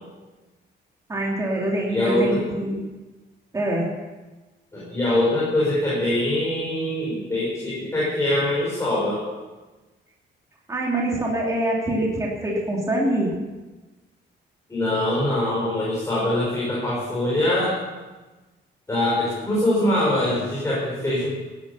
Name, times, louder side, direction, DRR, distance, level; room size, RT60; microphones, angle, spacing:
voice 1, 1.1-2.8 3.5-3.9 10.7-13.3, right 1 dB, 15° right, -3 dB, 2.6 m, -24 dB
voice 2, 1.9-2.4 4.7-9.2 14.7-17.8 18.9-21.3, left 1 dB, 15° left, -7 dB, 5.5 m, -23 dB
16.5 x 11.5 x 6.9 m, 1.2 s
cardioid pair, 165°, 19 cm